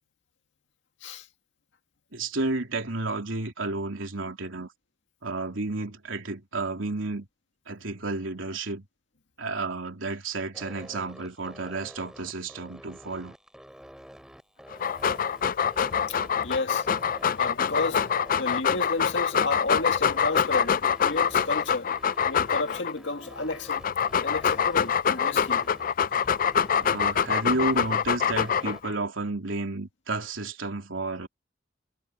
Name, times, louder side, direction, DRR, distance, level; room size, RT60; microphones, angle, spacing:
voice 1, 2.1-4.7 5.2-7.3 7.7-8.8 9.4-13.3 26.8-31.3, right 2 dB, 90° right, 3.4 m, -31 dB
sound 1, 10.5-28.8, equal, 5° right, 3.5 m, -48 dB
Dog, 14.7-22.9 23.5-28.9, left 7 dB, 45° left, 0.4 m, -25 dB
voice 2, 16.1-16.9 17.4-21.9 22.3-23.8 24.2-25.7, left 3 dB, 70° left, 2.1 m, -32 dB
head